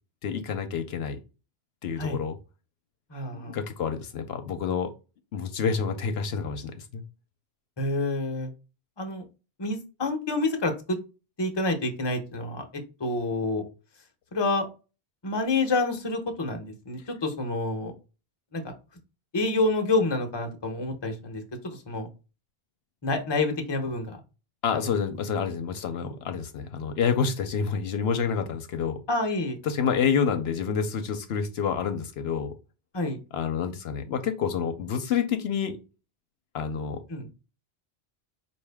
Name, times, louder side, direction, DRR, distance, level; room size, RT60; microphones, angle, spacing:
voice 1, 0.2-1.2 1.8-2.3 3.3-4.9 5.3-7.0 24.6-29.0 29.6-32.5 33.3-35.8 36.5-37.0, left 6 dB, 80° left, 8 dB, 0.9 m, -28 dB
voice 2, 3.1-3.6 7.8-8.5 9.0-9.2 9.6-11.0 11.4-13.6 14.3-14.7 15.2-17.9 18.5-18.7 19.3-22.1 23.0-24.2 24.7-24.8 26.0-26.1 29.1-29.6 32.9-33.2 37.1-37.3, left 2 dB, 25° left, 4 dB, 0.8 m, -28 dB
4.7 x 2.7 x 3.3 m, 0.31 s
omnidirectional pair, 1.1 m